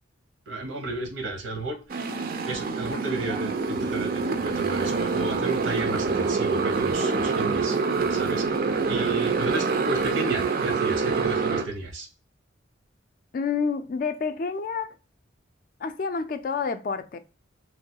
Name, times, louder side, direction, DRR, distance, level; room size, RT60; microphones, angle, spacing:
voice 1, 0.5-2.0 2.4-12.1, right 2 dB, 80° right, 0.8 m, -33 dB
Motorcycle, 1.9-11.6, right 4 dB, 45° right, 0.4 m, -26 dB
voice 2, 13.3-15.0 15.8-17.2, left 5 dB, 45° left, 0.3 m, -28 dB
3.0 x 2.2 x 2.7 m
head